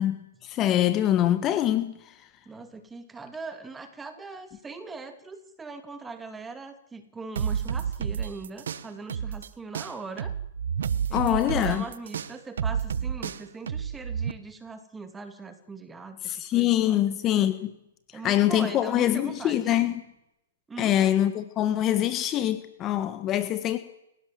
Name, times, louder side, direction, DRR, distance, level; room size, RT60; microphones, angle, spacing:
voice 1, 0.0-2.0 11.1-11.8 16.2-17.7 18.2-19.9 20.8-23.8, left 12 dB, 25° left, 11 dB, 1.5 m, -24 dB
voice 2, 2.4-10.3 11.1-17.0 18.1-19.8 20.7-21.0, right 4 dB, 10° right, 9 dB, 2.7 m, -41 dB
sound 1, 7.4-9.5 9.7-14.3, right 7 dB, 75° right, 1.3 m, -30 dB
29.5 x 17.0 x 7.7 m, 0.85 s
hypercardioid pair, 145°, 0 cm